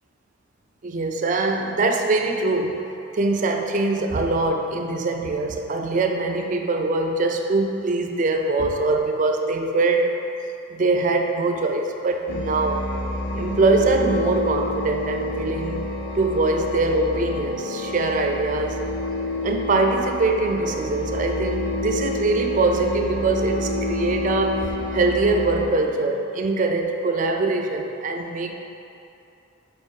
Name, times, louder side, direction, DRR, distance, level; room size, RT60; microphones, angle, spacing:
voice 1, 0.8-2.8 3.1-10.1 10.7-12.9 13.3-15.9 16.1-18.8 19.4-28.5, right 3 dB, 40° right, 4 dB, 0.4 m, -23 dB
sound 1, 12.3-25.7, left 2 dB, 55° left, 0.7 m, -29 dB
5.1 x 4.9 x 3.7 m, 2.8 s
head